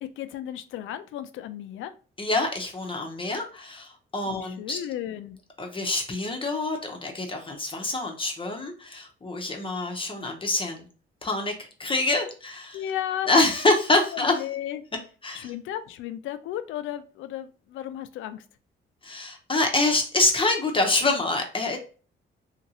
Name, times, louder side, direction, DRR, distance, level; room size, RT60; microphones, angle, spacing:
voice 1, 0.0-1.9 4.3-5.4 12.7-13.3 14.1-14.8 15.3-18.4, left 11 dB, 80° left, 11 dB, 0.4 m, -34 dB
voice 2, 2.2-4.8 5.6-10.8 11.2-12.8 13.3-14.3 15.2-15.5 19.0-21.8, left 2 dB, 25° left, 2 dB, 0.7 m, -26 dB
2.8 x 2.6 x 2.7 m, 0.38 s
cardioid pair, 90°, 20 cm